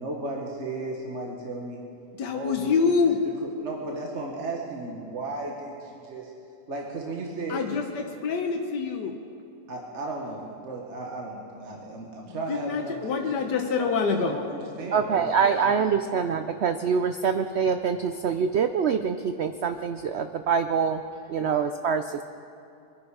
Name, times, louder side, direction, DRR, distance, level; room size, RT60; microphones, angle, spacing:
voice 1, 0.0-1.8 2.3-2.9 3.6-6.3 6.7-7.8 9.7-13.3 13.8-14.0 14.3-16.0, right 2 dB, 45° right, -1 dB, 1.6 m, -35 dB
voice 2, 2.1-3.2 7.5-9.2 12.3-14.4 21.4-21.5, left 5 dB, 85° left, 3 dB, 1.6 m, -26 dB
voice 3, 14.9-21.0 21.3-22.2, right 6 dB, 85° right, 8 dB, 0.5 m, -25 dB
23.5 x 10.5 x 4.8 m, 2.7 s
omnidirectional pair, 1.8 m